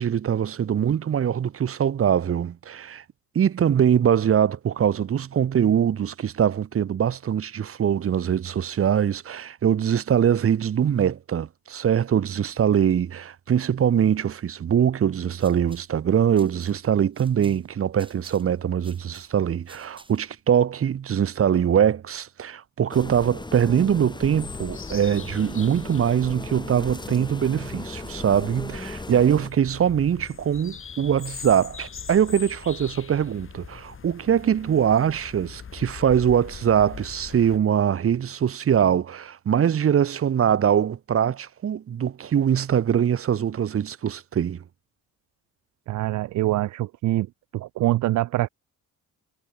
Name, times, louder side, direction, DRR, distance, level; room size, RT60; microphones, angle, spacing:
voice 1, 0.0-3.0 3.3-44.6, right 8 dB, 50° right, 1.4 m, -22 dB
sound 1, 15.2-20.4, right 2 dB, 15° right, 7.9 m, -54 dB
sound 2, 22.9-29.5, left 2 dB, 15° left, 7.5 m, -36 dB
sound 3, 24.4-37.6, left 6 dB, 45° left, 3.7 m, -42 dB
voice 2, 45.9-47.3 47.5-48.5, right 16 dB, 70° right, 0.6 m, -24 dB
cardioid pair, 90°, 30 cm